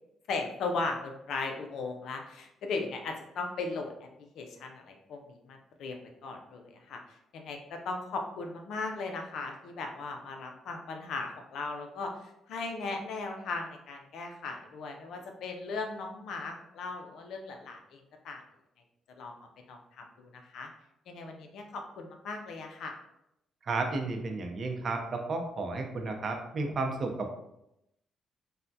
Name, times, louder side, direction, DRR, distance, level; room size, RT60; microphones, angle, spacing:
voice 1, 0.3-3.9 4.3-7.0 7.3-12.1 12.5-18.4 19.2-20.7 21.1-22.9, left 3 dB, 75° left, 3 dB, 0.4 m, -37 dB
voice 2, 23.6-27.4, right 3 dB, 45° right, 3 dB, 0.5 m, -33 dB
3.3 x 2.1 x 2.6 m, 0.83 s
cardioid pair, 90°, 0 cm